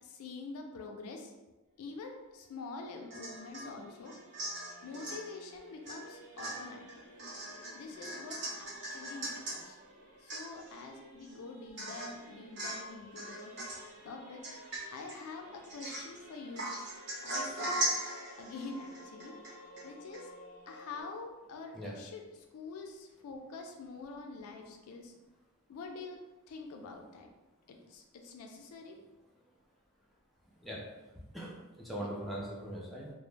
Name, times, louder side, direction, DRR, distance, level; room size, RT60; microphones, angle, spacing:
voice 1, 0.0-1.3 1.8-4.2 4.8-7.0 7.7-9.8 10.2-13.5 14.0-14.5 14.9-16.7 17.2-17.7 18.4-19.3 19.8-20.3 20.7-25.1 25.7-26.2 26.5-27.3 27.7-29.0 31.9-32.1, left 3 dB, 80° left, 3 dB, 0.3 m, -46 dB
Singing / Musical instrument, 1.6-21.0, equal, 85° right, 0.8 m, -56 dB
Domestic sounds home sounds / Chink clink / Drip, 3.1-3.7 4.1-5.2 5.9-6.1 6.4-9.6 10.0-10.1 10.3-10.8 11.2-11.3 11.8-12.2 12.6-12.9 13.2-13.9 14.4-15.2 15.6-16.2 16.6-19.9 20.1-20.2, right 1 dB, 55° right, 0.7 m, -39 dB
voice 2, 31.3-33.1, right 1 dB, ahead, -5 dB, 0.3 m, -40 dB
2.1 x 2.0 x 3.1 m, 1.1 s
head